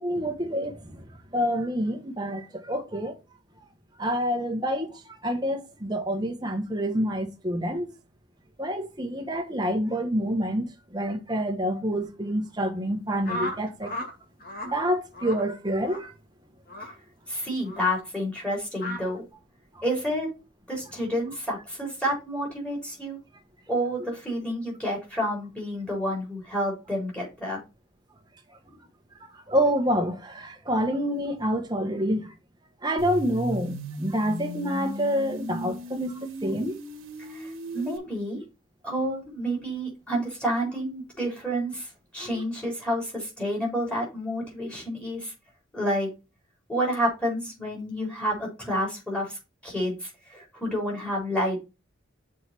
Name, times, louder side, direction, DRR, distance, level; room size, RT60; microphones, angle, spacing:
voice 1, 0.0-1.0 1.3-3.1 4.0-7.9 8.6-10.7 10.9-13.9 14.6-16.1 29.5-32.3 32.8-36.8, equal, 20° right, 1.2 m, -27 dB
sound 1, 13.2-14.1 14.4-14.7 15.1-15.4 15.8-16.1 16.7-16.9 17.6-17.9 18.8-19.0, left 1 dB, 45° left, 2.4 m, -34 dB
voice 2, 17.3-19.2 19.8-20.3 20.7-23.2 23.7-27.6 37.2-38.4 38.8-45.3 45.7-46.1 46.7-49.4 49.6-51.6, equal, 5° left, 4.0 m, -29 dB
sound 2, 33.0-38.0, right 1 dB, 90° right, 1.6 m, -36 dB
6.4 x 4.9 x 4.4 m
head